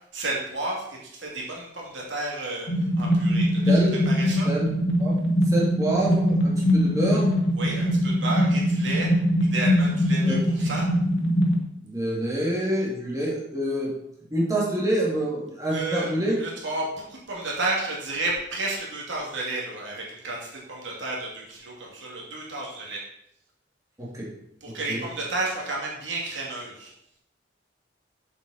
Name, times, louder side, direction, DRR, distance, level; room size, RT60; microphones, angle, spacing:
voice 1, 0.1-2.7 3.0-4.5 7.5-9.1 9.5-10.9 15.7-16.1 16.4-23.0 24.6-26.9, right 2 dB, 85° right, -3 dB, 2.4 m, -32 dB
sound 1, 2.7-11.6, equal, 80° left, 1.6 m, -22 dB
voice 2, 3.7-4.0 4.4-4.7 5.0-5.1 5.5-7.3 10.2-10.4 11.8-13.9 14.3-16.4 24.0-24.3 24.9-25.0, right 1 dB, 20° right, -6 dB, 2.3 m, -26 dB
7.4 x 7.3 x 4.2 m, 0.75 s
head